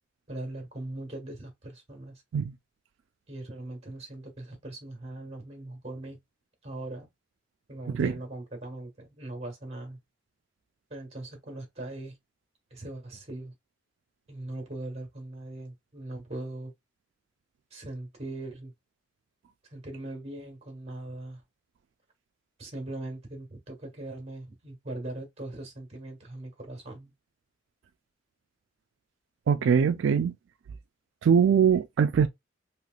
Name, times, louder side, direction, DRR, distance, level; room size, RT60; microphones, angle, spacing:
voice 1, 0.3-2.2 3.3-6.2 6.6-7.1 7.7-10.0 10.9-12.1 12.7-13.5 14.3-16.7 17.7-18.7 19.7-21.4 22.6-27.1, right 2 dB, 35° right, 1.5 m, -40 dB
voice 2, 29.5-30.3 31.2-32.3, right 7 dB, 80° right, 0.3 m, -22 dB
3.1 x 3.0 x 2.4 m
head